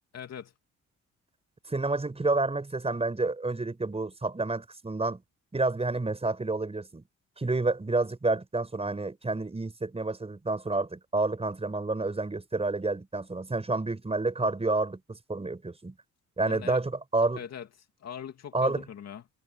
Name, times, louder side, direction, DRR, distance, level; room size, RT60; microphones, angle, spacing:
voice 1, 0.1-0.5 16.4-16.8 17.3-17.7 18.0-19.2, left 8 dB, 60° left, 2.6 m, -41 dB
voice 2, 1.7-5.2 5.5-7.0 7.4-15.9 16.4-17.4 18.5-18.8, right 3 dB, 20° right, 5.8 m, -29 dB
cardioid pair, 90°, 30 cm